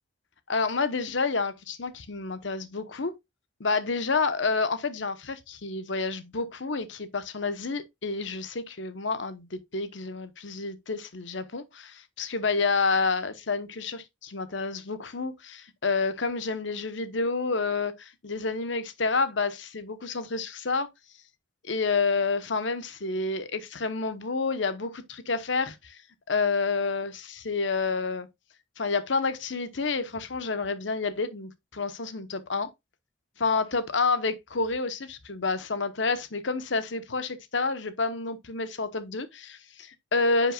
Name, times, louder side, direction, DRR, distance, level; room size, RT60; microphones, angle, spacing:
voice 1, 0.5-3.1 3.6-20.9 21.6-26.0 26.3-28.3 28.8-32.7 33.4-40.5, left 4 dB, 65° left, 1.0 m, -29 dB
10.0 x 5.5 x 2.3 m
head